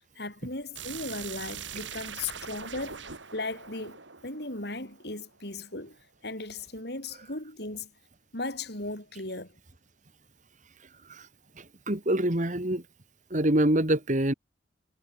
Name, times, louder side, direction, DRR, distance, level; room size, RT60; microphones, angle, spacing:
voice 1, 0.2-6.0 6.2-7.9 8.3-9.5, left 2 dB, 60° left, 7.9 m, -37 dB
sound 1, 0.7-5.5, right 7 dB, 85° right, 6.1 m, -42 dB
voice 2, 11.6-12.8 13.3-14.3, right 1 dB, 40° right, 2.3 m, -25 dB
head